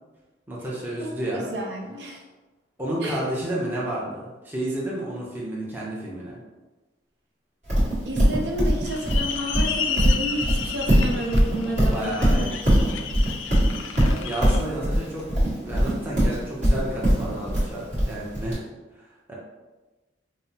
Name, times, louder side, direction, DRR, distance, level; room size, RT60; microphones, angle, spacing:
voice 1, 0.5-1.5 2.8-6.4 11.6-12.6 14.0-15.3 15.6-18.6 19.3-19.4, right 1 dB, 10° right, -6 dB, 0.6 m, -31 dB
voice 2, 1.0-2.2 3.0-3.2 8.0-12.6 14.5-14.7, equal, 65° right, -1 dB, 0.6 m, -31 dB
Livestock farm animals working animals, 7.7-18.5, equal, 40° right, 1.5 m, -21 dB
sound 1, 8.8-14.6, left 6 dB, 85° left, 0.3 m, -32 dB
5.4 x 2.0 x 2.8 m, 1.2 s
head